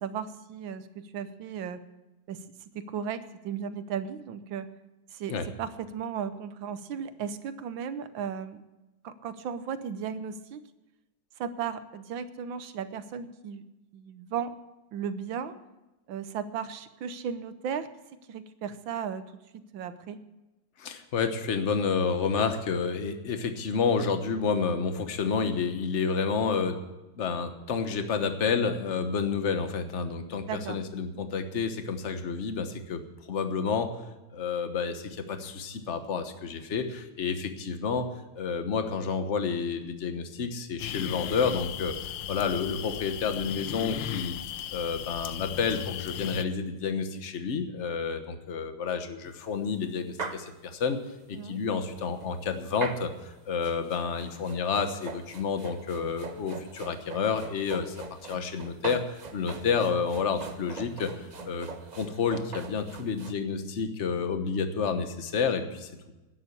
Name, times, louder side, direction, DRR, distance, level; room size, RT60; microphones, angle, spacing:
voice 1, 0.0-1.8 2.3-2.4 2.7-4.7 5.1-8.6 9.0-10.6 11.4-13.6 13.9-14.5 14.9-15.6 16.1-17.9 18.3-19.2 19.7-20.2 30.5-30.8 51.3-51.6, right 7 dB, 75° right, 12 dB, 1.6 m, -35 dB
voice 2, 20.8-26.8 27.2-33.0 33.3-33.9 34.3-38.1 38.3-44.3 44.7-51.0 51.3-58.0 58.2-65.9, left 5 dB, 40° left, 8 dB, 1.3 m, -30 dB
sound 1, 40.8-46.4, left 12 dB, 75° left, 1.3 m, -36 dB
sound 2, 49.2-49.3 49.8-49.9 50.2-50.4 51.7-63.3, right 4 dB, 50° right, 0.5 m, -42 dB
11.5 x 10.0 x 8.3 m, 1.1 s
omnidirectional pair, 2.1 m